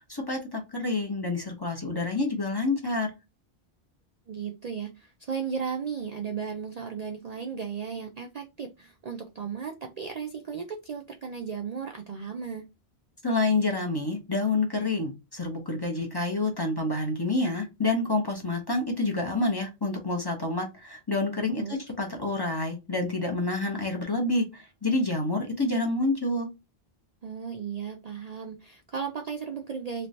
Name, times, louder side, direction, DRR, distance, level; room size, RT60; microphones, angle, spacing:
voice 1, 0.1-3.1 13.2-26.5, left 2 dB, 25° left, 0.8 m, -28 dB
voice 2, 4.3-12.6 21.6-21.8 27.2-30.1, right 6 dB, 50° right, 0.5 m, -35 dB
3.2 x 3.1 x 2.7 m
omnidirectional pair, 1.1 m